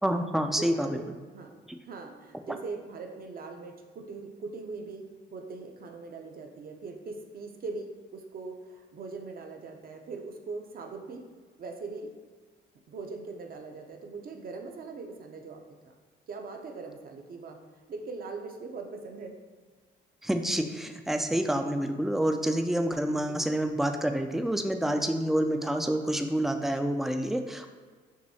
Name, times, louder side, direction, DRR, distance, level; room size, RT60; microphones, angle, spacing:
voice 1, 0.0-1.0 20.2-27.7, right 1 dB, ahead, 6 dB, 0.3 m, -28 dB
voice 2, 0.6-1.0 1.3-1.5 1.8-11.2 11.6-12.1 12.9-15.8 16.3-17.6 17.9-19.3 23.2-23.3, right 4 dB, 50° right, 4 dB, 0.6 m, -41 dB
6.3 x 2.7 x 2.7 m, 1.5 s
cardioid pair, 90°, 20 cm